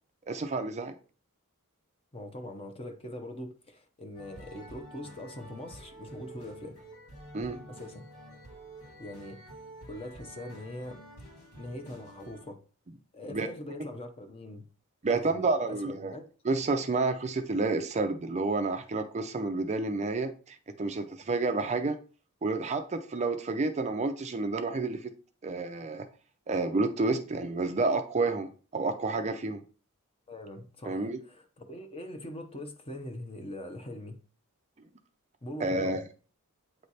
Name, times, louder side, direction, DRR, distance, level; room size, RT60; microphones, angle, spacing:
voice 1, 0.3-0.9 7.3-7.6 13.3-13.5 15.0-16.1 16.4-22.0 22.4-25.1 25.4-26.1 26.5-29.6 30.9-31.2 35.6-36.0, right 3 dB, 30° right, 0.5 m, -30 dB
voice 2, 2.1-6.8 7.7-8.1 9.0-9.4 9.8-11.0 11.6-12.6 13.1-14.6 15.0-16.2 30.3-34.2 35.4-36.0, left 1 dB, 25° left, 0.9 m, -42 dB
sound 1, 4.2-12.5, right 1 dB, 90° left, 3.2 m, -49 dB
8.4 x 3.2 x 4.1 m
head